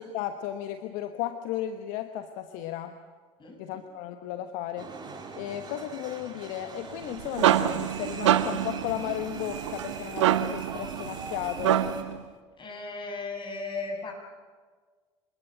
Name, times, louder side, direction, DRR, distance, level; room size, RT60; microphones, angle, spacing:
voice 1, 0.0-3.0 3.6-4.9 5.3-11.8, left 11 dB, 60° left, 8 dB, 1.3 m, -34 dB
voice 2, 3.4-3.8 12.6-14.1, left 3 dB, 30° left, 2 dB, 7.7 m, -36 dB
sound 1, 4.8-12.0, right 4 dB, 30° right, 4.5 m, -43 dB
sound 2, 6.9-12.2, right 11 dB, 75° right, 1.1 m, -26 dB
25.5 x 20.0 x 9.1 m, 1.5 s
figure-of-eight pair, 65°, 15 cm